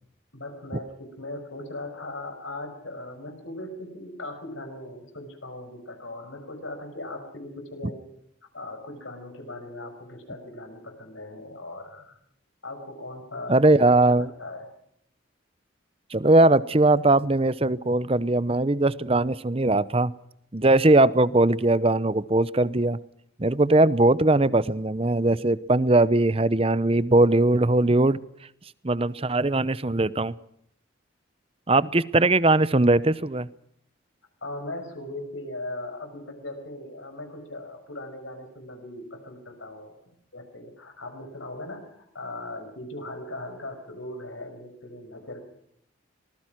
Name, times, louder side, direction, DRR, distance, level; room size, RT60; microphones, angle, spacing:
voice 1, 0.3-8.0 8.5-12.2 12.6-14.7 34.4-45.4, left 2 dB, 80° left, 7 dB, 5.9 m, -39 dB
voice 2, 13.5-14.3 16.1-20.1 20.5-23.0 23.4-28.2 28.8-30.3 31.7-33.5, right 2 dB, 30° right, 17 dB, 0.8 m, -20 dB
25.5 x 19.5 x 6.0 m, 0.72 s
head